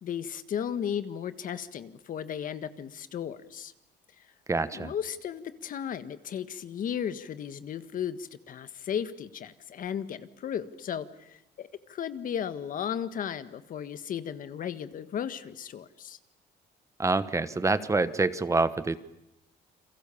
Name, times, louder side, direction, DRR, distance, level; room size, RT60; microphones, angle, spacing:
voice 1, 0.0-3.7 4.7-16.2, left 8 dB, 55° left, 11 dB, 1.6 m, -35 dB
voice 2, 4.5-4.9 17.0-19.0, right 3 dB, 20° right, 13 dB, 1.2 m, -26 dB
29.5 x 23.0 x 7.1 m, 0.89 s
cardioid pair, 110°, 17 cm